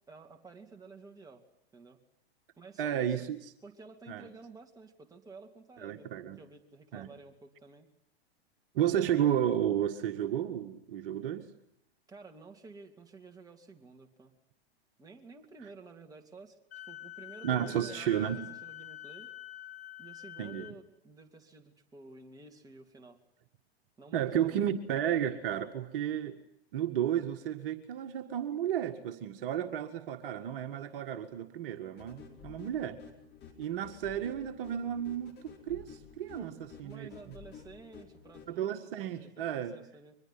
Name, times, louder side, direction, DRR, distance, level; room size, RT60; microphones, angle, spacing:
voice 1, 0.1-1.4 1.7-2.0 2.6-3.3 3.6-7.9 12.1-14.3 15.0-16.6 16.9-19.3 20.0-23.2 24.0-24.7 32.3-32.6 36.4-39.1 39.4-40.2, right 3 dB, 10° right, 2 dB, 2.9 m, -52 dB
voice 2, 2.8-3.4 4.1-4.3 5.8-6.4 6.9-7.1 8.7-11.5 17.4-18.4 20.4-20.7 24.1-26.4 26.7-33.0 33.6-35.3 35.7-36.5 36.8-37.1 38.5-39.8, right 10 dB, 55° right, 6 dB, 1.9 m, -32 dB
Wind instrument woodwind instrument, 16.7-20.8, left 15 dB, 70° left, 2.1 m, -46 dB
sound 1, 32.0-38.5, left 7 dB, 30° left, 4.9 m, -52 dB
23.0 x 21.5 x 10.0 m, 0.75 s
hypercardioid pair, 105°, 32 cm